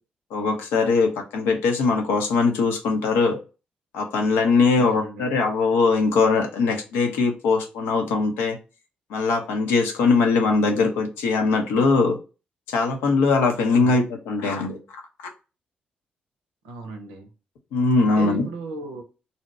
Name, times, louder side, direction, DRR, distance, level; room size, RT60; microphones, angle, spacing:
voice 1, 0.3-3.4 3.9-8.6 9.1-12.2 12.7-14.8 17.7-18.5, left 4 dB, 80° left, 0.6 m, -21 dB
voice 2, 4.8-5.4 13.7-14.0 16.6-17.3 18.0-19.0, right 3 dB, 90° right, 0.6 m, -36 dB
2.7 x 2.1 x 4.0 m
hypercardioid pair, 45°, 4 cm